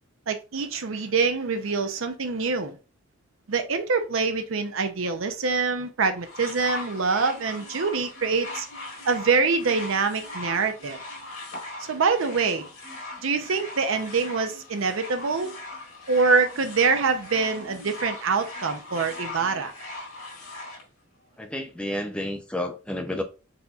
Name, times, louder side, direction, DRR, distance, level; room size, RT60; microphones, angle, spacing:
voice 1, 0.3-2.8 3.5-8.7 9.1-11.0 11.9-12.7 13.2-15.5 16.1-19.7, right 4 dB, 70° right, 0.6 m, -25 dB
sound 1, 6.2-20.8 21.7-21.8, left 2 dB, 90° left, 1.7 m, -40 dB
voice 2, 21.4-23.2, left 1 dB, 5° left, 0.4 m, -30 dB
4.2 x 4.0 x 2.3 m
head